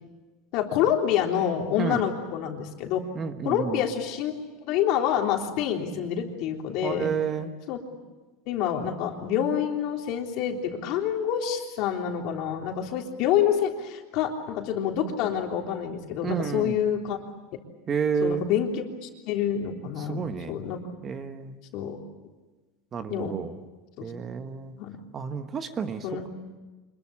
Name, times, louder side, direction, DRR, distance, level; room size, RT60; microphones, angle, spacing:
voice 1, 0.5-3.0 3.5-4.3 4.6-7.1 7.7-7.8 8.5-17.2 18.2-18.7 19.0-20.8 21.7-22.0 23.1-23.4 24.0-24.1 24.8-25.0 26.0-26.3, left 9 dB, 55° left, 2 dB, 3.5 m, -27 dB
voice 2, 3.1-3.8 6.8-7.5 16.2-16.8 17.9-18.4 20.0-20.6 21.0-21.6 22.9-23.6 24.0-24.7 25.1-26.3, right 6 dB, 25° right, 8 dB, 1.3 m, -30 dB
25.5 x 22.0 x 8.5 m, 1.2 s
supercardioid pair, 140°, 0 cm